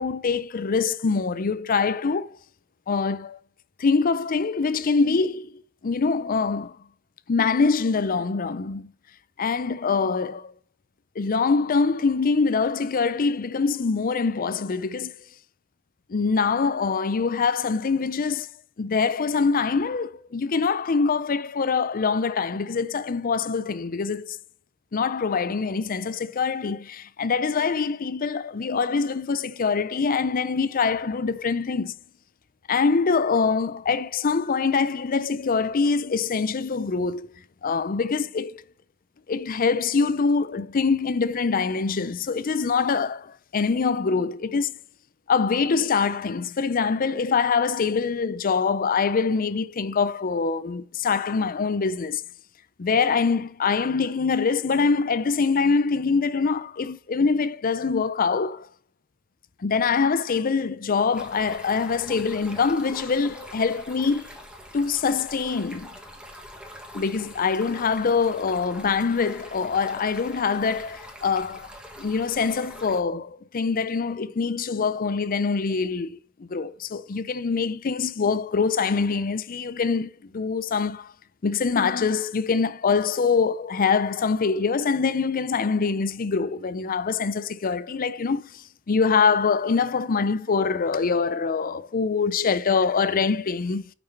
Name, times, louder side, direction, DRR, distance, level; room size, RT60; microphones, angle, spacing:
voice 1, 0.0-2.4 2.9-3.4 3.8-5.5 5.8-6.8 7.3-8.9 9.4-10.5 11.2-15.1 16.1-18.5 18.8-24.4 24.9-31.9 32.7-37.3 37.6-38.6 39.3-44.7 45.3-52.2 52.8-58.7 59.6-64.3 64.7-65.9 66.9-71.7 72.0-81.1 81.4-93.9, left 5 dB, 40° left, 0.5 m, -24 dB
Stream, 61.1-73.0, equal, 5° right, 1.7 m, -44 dB
6.5 x 6.0 x 5.7 m
head